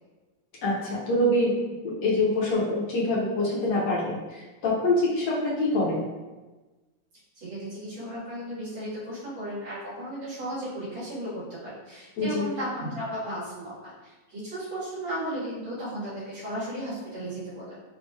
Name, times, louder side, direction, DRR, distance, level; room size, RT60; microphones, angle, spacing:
voice 1, 0.6-1.5 1.8-6.0 12.2-12.5, left 1 dB, 65° left, -4 dB, 1.2 m, -25 dB
voice 2, 7.3-17.8, right 1 dB, 80° right, -11 dB, 2.3 m, -35 dB
4.4 x 2.8 x 2.2 m, 1.2 s
omnidirectional pair, 2.1 m